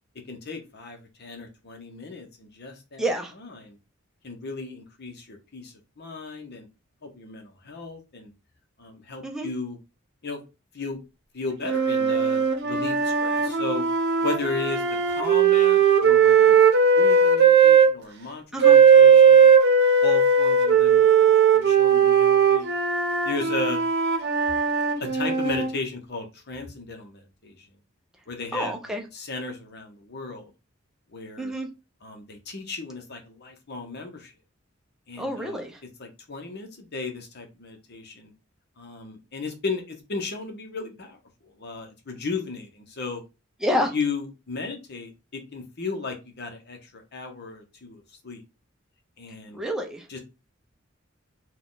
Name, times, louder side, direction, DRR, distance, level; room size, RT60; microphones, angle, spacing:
voice 1, 0.3-3.0 3.6-3.8 4.2-6.7 7.0-8.3 8.8-9.8 10.2-10.4 10.7-11.0 11.3-13.8 14.2-19.4 20.0-21.3 21.5-22.7 23.2-23.8 25.0-27.7 28.3-30.5 31.1-31.5 32.0-34.3 35.1-35.6 36.0-38.3 38.8-41.2 41.4-43.2 43.9-48.4 49.2-49.6 50.1-50.2, left 3 dB, 55° left, 4 dB, 0.9 m, -35 dB
voice 2, 3.0-3.3 9.2-9.5 18.5-18.8 28.5-29.0 31.4-31.7 35.2-35.8 43.6-43.9 49.5-50.1, equal, 5° right, 2 dB, 0.6 m, -28 dB
sound 1, 11.6-17.9 18.6-25.7, right 6 dB, 55° right, 0.8 m, -18 dB
4.3 x 2.3 x 3.8 m, 0.28 s
head